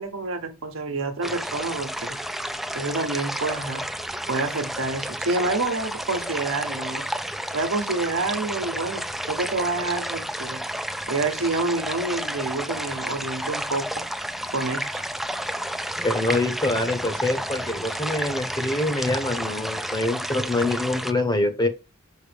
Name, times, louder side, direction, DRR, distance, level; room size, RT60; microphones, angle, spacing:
voice 1, 0.0-2.2 2.7-3.8 4.3-7.0 7.5-10.6 11.1-13.8 14.5-15.0, right 3 dB, 80° right, 1.1 m, -28 dB
sound 1, 1.2-21.1, equal, ahead, 0.4 m, -31 dB
voice 2, 16.0-21.7, left 2 dB, 20° left, 0.9 m, -25 dB
6.0 x 5.0 x 3.4 m
head